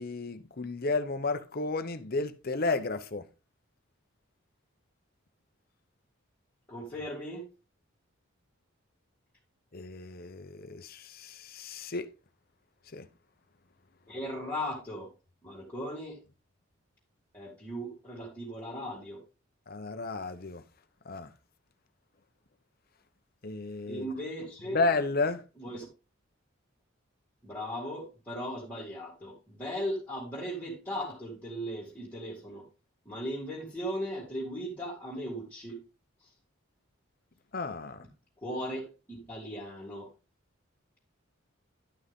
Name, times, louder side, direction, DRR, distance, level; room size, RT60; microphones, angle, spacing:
voice 1, 0.0-3.2 9.7-12.1 12.9-13.1 19.7-20.6 21.1-21.3 23.4-24.1 24.7-25.4 37.5-38.1, left 3 dB, 45° left, 0.8 m, -32 dB
voice 2, 6.7-7.5 14.1-15.1 15.4-16.2 17.3-19.2 23.9-24.8 25.6-25.8 27.4-32.6 33.0-35.8 36.2-36.3 38.4-40.1, equal, 10° left, 3.1 m, -37 dB
11.5 x 6.2 x 3.7 m
head